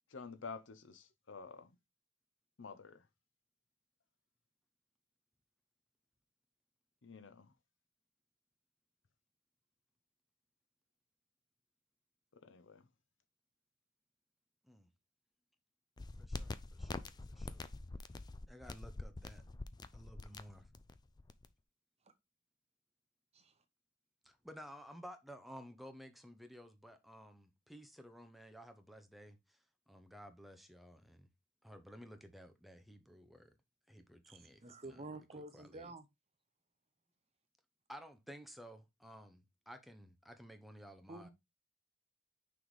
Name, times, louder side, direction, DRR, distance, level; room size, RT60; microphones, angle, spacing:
voice 1, 0.1-1.7 2.6-3.0 7.0-7.5 12.4-12.9, left 5 dB, 65° left, 0.7 m, -50 dB
sound 1, 16.0-21.5, left 2 dB, 20° left, 0.4 m, -45 dB
voice 2, 16.2-17.7 18.5-19.4 19.9-20.7 24.2-29.6 29.9-31.3 31.6-33.5 33.9-35.0 35.5-35.9 37.9-41.3, equal, ahead, 0.8 m, -54 dB
voice 3, 34.2-36.1 41.1-41.3, right 2 dB, 30° right, 0.8 m, -50 dB
6.1 x 3.5 x 4.7 m
head